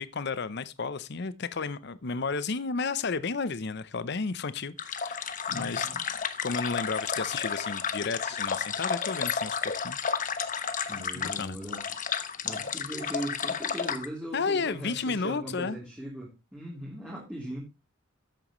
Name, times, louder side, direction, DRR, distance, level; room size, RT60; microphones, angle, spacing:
voice 1, 0.0-5.9 6.4-10.0 11.1-11.6 14.3-15.8, left 4 dB, 60° left, 0.7 m, -32 dB
sound 1, 4.8-14.1, left 6 dB, 40° left, 1.0 m, -32 dB
voice 2, 5.5-6.0 10.9-11.8 12.4-17.6, right 1 dB, 5° right, 3.2 m, -39 dB
13.5 x 9.0 x 3.1 m
head